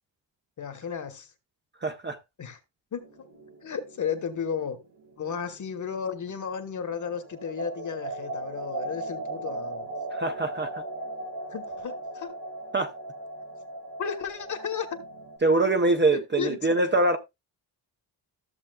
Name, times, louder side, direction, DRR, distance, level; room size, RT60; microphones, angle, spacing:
voice 1, 0.6-1.3 2.4-2.6 2.9-3.2 3.6-4.8 5.2-9.9 11.5-12.3 14.0-14.9 16.1-16.7, left 7 dB, 40° left, 1.2 m, -33 dB
voice 2, 1.8-2.2 10.1-10.8 12.7-12.9 15.4-17.2, right 2 dB, 25° right, 0.6 m, -24 dB
sound 1, 3.0-6.6 6.9-15.4, right 2 dB, 75° right, 3.7 m, -38 dB
14.0 x 7.2 x 2.3 m
wide cardioid pair, 170°, 45 cm